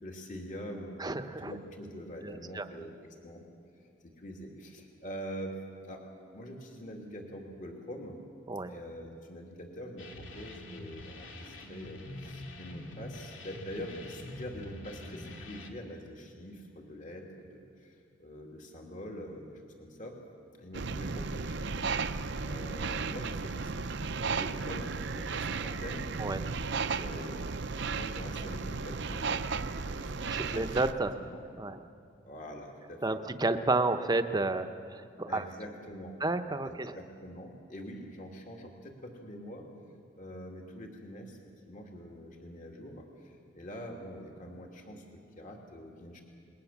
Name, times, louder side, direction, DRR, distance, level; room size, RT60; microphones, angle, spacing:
voice 1, 0.0-3.4 4.0-6.1 6.3-8.2 8.7-20.2 20.5-26.1 26.9-27.5 27.9-31.4 32.2-33.2 35.3-36.2 36.6-39.7 40.2-41.4 41.7-46.2, equal, 45° left, 1 dB, 2.7 m, -45 dB
voice 2, 1.0-1.5 2.2-2.6 8.5-8.7 26.2-26.4 30.5-31.1 31.6-31.8 33.0-35.4 36.2-36.9, right 2 dB, 20° right, 9 dB, 0.9 m, -31 dB
sound 1, 10.0-15.7, left 1 dB, 80° left, 2.4 m, -45 dB
sound 2, 20.7-30.9, right 4 dB, 65° right, 0.8 m, -34 dB
28.0 x 21.0 x 7.4 m, 2.3 s
head